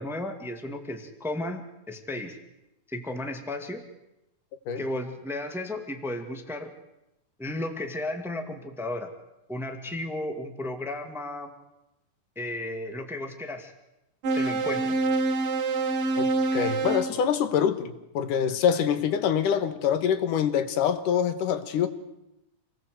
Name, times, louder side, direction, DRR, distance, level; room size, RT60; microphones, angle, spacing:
voice 1, 0.0-2.4 2.9-3.8 4.8-6.7 7.4-9.1 9.5-11.5 12.3-13.7 14.3-15.0, left 1 dB, ahead, 1.0 m, -34 dB
sound 1, 14.2-17.2, right 3 dB, 50° right, 2.0 m, -26 dB
voice 2, 16.2-21.9, left 8 dB, 65° left, 2.8 m, -25 dB
28.0 x 19.5 x 7.9 m
omnidirectional pair, 4.3 m